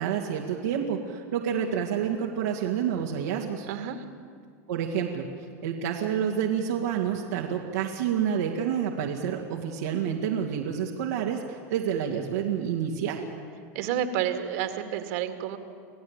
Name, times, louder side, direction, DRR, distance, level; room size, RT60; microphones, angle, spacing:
voice 1, 0.0-3.7 4.7-5.3 5.6-13.3, right 8 dB, 90° right, -2 dB, 2.3 m, -28 dB
voice 2, 3.7-4.0 13.7-15.6, right 10 dB, 65° right, 8 dB, 2.3 m, -30 dB
27.0 x 16.5 x 9.0 m, 2.1 s
supercardioid pair, 135°, 8 cm